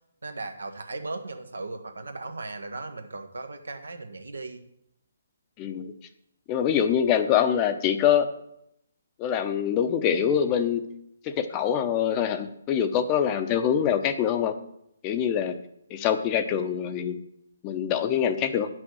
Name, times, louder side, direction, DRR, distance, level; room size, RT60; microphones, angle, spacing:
voice 1, 0.2-4.6, right 3 dB, 80° right, 6 dB, 1.3 m, -37 dB
voice 2, 5.6-5.9 6.5-8.3 9.2-10.8 11.2-14.5 15.0-15.5 15.9-17.2 17.6-18.7, left 9 dB, 25° left, 9 dB, 0.7 m, -24 dB
9.3 x 6.2 x 6.2 m, 0.77 s
figure-of-eight pair, 145°, 0 cm